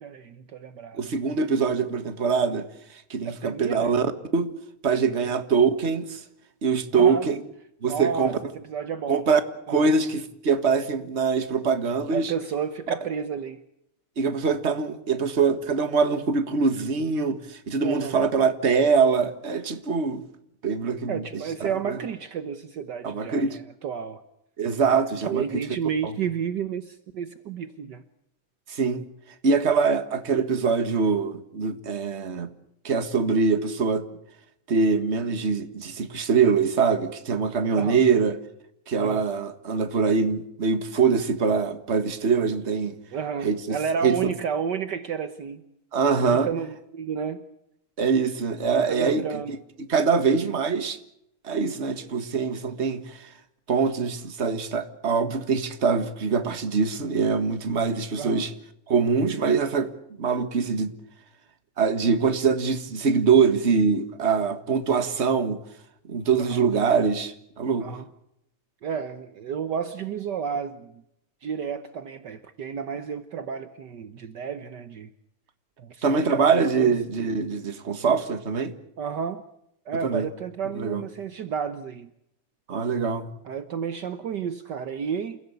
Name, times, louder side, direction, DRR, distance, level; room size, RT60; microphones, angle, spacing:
voice 1, 0.0-1.1 3.2-4.0 5.2-5.4 6.9-7.3 7.8-9.3 9.7-9.9 12.1-13.6 17.8-18.2 21.1-24.2 25.2-28.0 37.7-38.0 39.0-39.2 43.1-45.6 46.2-47.4 48.9-49.5 58.1-58.5 66.4-66.6 67.8-68.1 68.8-71.0 71.4-75.1 75.8-76.4 76.8-76.9 79.0-79.4 79.9-82.1 83.4-85.4, right 7 dB, 70° right, 1.0 m, -31 dB
voice 2, 1.0-2.6 2.9-4.5 4.8-6.2 6.6-7.4 7.8-8.3 9.1-9.4 9.7-12.3 14.2-20.2 20.6-21.4 21.9-22.0 23.0-23.6 24.6-25.6 28.7-29.0 29.4-32.5 32.8-34.0 34.7-38.4 38.9-43.0 43.4-43.8 44.0-44.2 45.9-46.5 48.0-49.6 49.9-51.0 51.4-53.3 53.7-58.5 58.9-59.9 60.2-60.9 61.8-65.6 66.1-67.9 76.0-78.7 80.0-80.3 80.7-81.0 82.7-83.3, right 5 dB, 30° right, 1.3 m, -23 dB
29.0 x 16.5 x 8.1 m
omnidirectional pair, 3.3 m